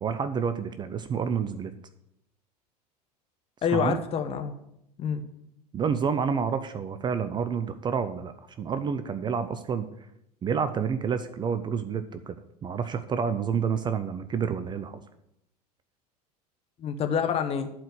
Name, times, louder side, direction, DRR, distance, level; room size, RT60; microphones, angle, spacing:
voice 1, 0.0-1.7 3.7-4.0 5.7-9.9 10.4-12.4 12.6-15.0, right 6 dB, 20° right, 12 dB, 0.6 m, -29 dB
voice 2, 3.6-4.5 5.0-5.2 16.8-17.7, left 7 dB, 30° left, 7 dB, 1.1 m, -27 dB
11.5 x 4.7 x 7.9 m, 0.79 s
figure-of-eight pair, 75°, 20 cm